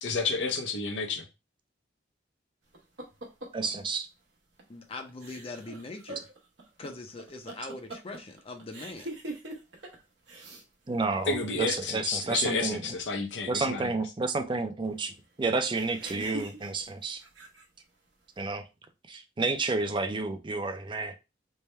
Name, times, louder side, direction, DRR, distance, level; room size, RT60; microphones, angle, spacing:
voice 1, 0.0-1.2 11.3-13.9, left 4 dB, 80° left, 0.8 m, -30 dB
sound 1, 2.7-3.7 4.6-4.8 5.1-10.0 10.3-10.6 10.9-11.8 15.7-17.8, right 2 dB, 80° right, 0.9 m, -43 dB
voice 2, 3.5-4.1 10.9-12.8 13.5-17.2 18.4-18.6 19.1-21.1, right 3 dB, 25° right, 0.5 m, -30 dB
voice 3, 4.7-6.3 6.8-9.1, left 2 dB, 30° left, 0.5 m, -41 dB
3.4 x 2.2 x 4.2 m
head